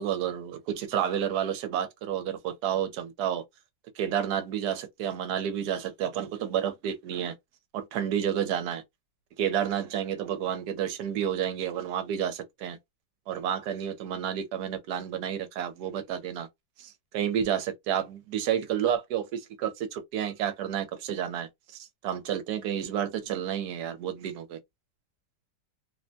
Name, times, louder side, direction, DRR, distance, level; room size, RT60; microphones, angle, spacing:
voice 1, 0.0-3.4 4.0-7.3 7.7-8.8 9.4-12.8 13.3-16.5 16.8-24.6, right 9 dB, 70° right, 1.1 m, -30 dB
3.2 x 2.1 x 2.6 m
omnidirectional pair, 1.9 m